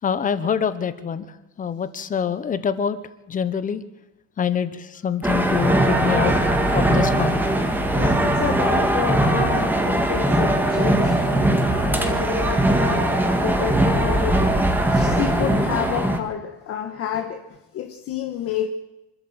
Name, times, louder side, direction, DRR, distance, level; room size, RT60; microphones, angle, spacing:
voice 1, 0.0-1.3 1.6-3.0 3.3-3.8 4.4-7.4, left 7 dB, 25° left, 1.1 m, -25 dB
sound 1, 5.2-16.2, right 1 dB, 5° right, 1.8 m, -20 dB
voice 2, 7.9-17.4 17.7-18.7, left 9 dB, 45° left, 1.5 m, -29 dB
26.5 x 12.5 x 8.0 m
cardioid pair, 175°, 32 cm